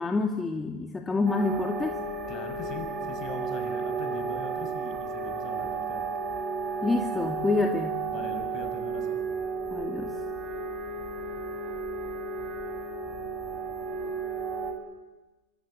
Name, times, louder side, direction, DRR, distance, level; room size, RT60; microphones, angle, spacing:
voice 1, 0.0-2.0 6.8-8.0 9.7-10.1, left 3 dB, 15° left, 3 dB, 2.3 m, -27 dB
sound 1, 1.3-14.7, right 4 dB, 40° right, 7.0 m, -33 dB
voice 2, 2.3-6.1 8.1-9.2, left 5 dB, 45° left, 6 dB, 6.7 m, -41 dB
26.5 x 21.5 x 9.7 m, 1.2 s
hypercardioid pair, 90°, 0 cm